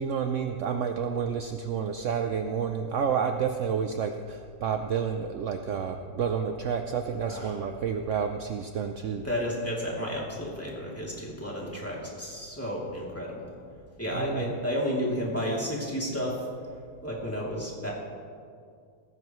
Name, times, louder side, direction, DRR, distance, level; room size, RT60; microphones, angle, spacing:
voice 1, 0.0-9.3 14.1-14.6, right 7 dB, 70° right, 6 dB, 0.7 m, -30 dB
voice 2, 7.3-7.6 9.2-13.5 14.0-16.4 17.0-17.9, equal, 5° left, -5 dB, 2.7 m, -32 dB
18.0 x 15.0 x 3.1 m, 2.2 s
omnidirectional pair, 1.9 m